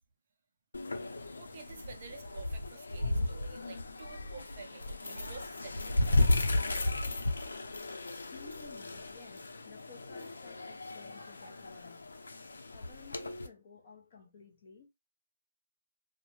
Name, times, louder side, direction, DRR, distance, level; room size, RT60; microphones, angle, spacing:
sound 1, 0.7-13.5, left 2 dB, 85° left, 0.7 m, -34 dB
voice 1, 1.1-6.3, right 5 dB, 30° right, 0.5 m, -50 dB
voice 2, 8.3-12.3 12.7-14.9, left 5 dB, 30° left, 0.8 m, -55 dB
2.6 x 2.2 x 3.0 m
hypercardioid pair, 175°, 0 cm